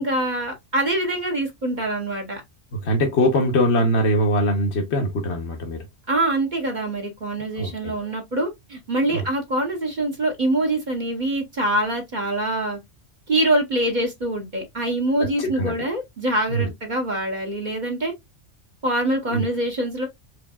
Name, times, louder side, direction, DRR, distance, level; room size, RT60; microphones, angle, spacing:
voice 1, 0.0-2.4 6.1-12.8 13.3-18.1 18.8-20.1, right 1 dB, 40° right, 1.2 m, -24 dB
voice 2, 2.7-5.9 7.6-7.9 9.1-9.2 15.4-15.7 16.5-16.7 19.3-19.5, equal, 65° left, 1.2 m, -22 dB
4.6 x 3.2 x 2.3 m
omnidirectional pair, 1.2 m